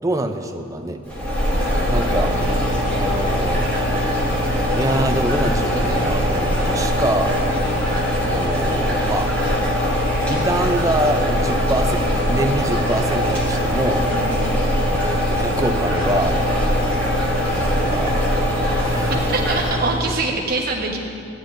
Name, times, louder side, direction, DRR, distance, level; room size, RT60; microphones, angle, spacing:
voice 1, 0.0-1.0 1.9-2.3 2.9-3.8 4.7-7.4 8.2-9.3 10.3-14.1 15.0-16.4 17.6-18.2 18.8-19.1 20.0-20.1, right 1 dB, 15° right, 6 dB, 0.4 m, -25 dB
sound 1, 1.1-20.0, equal, 10° left, 1.7 m, -21 dB
voice 2, 14.1-14.5 19.3-21.0, right 3 dB, 45° right, -1 dB, 1.1 m, -24 dB
14.5 x 9.7 x 2.6 m, 2.5 s
head